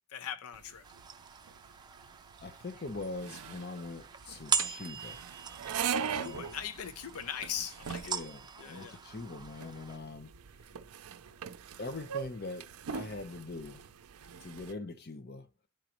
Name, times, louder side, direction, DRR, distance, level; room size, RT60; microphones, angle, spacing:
voice 1, 0.1-0.8 5.9-8.1 8.6-9.0, left 9 dB, 85° left, 0.5 m, -40 dB
sound 1, 0.5-14.7, right 7 dB, 85° right, 0.5 m, -41 dB
sound 2, 0.8-10.0, right 6 dB, 20° right, 0.5 m, -40 dB
voice 2, 2.4-5.2 6.2-6.5 8.1-10.3 10.7-10.8 11.8-13.8 14.4-15.5, left 3 dB, 45° left, 0.8 m, -42 dB
10.5 x 3.8 x 3.0 m
head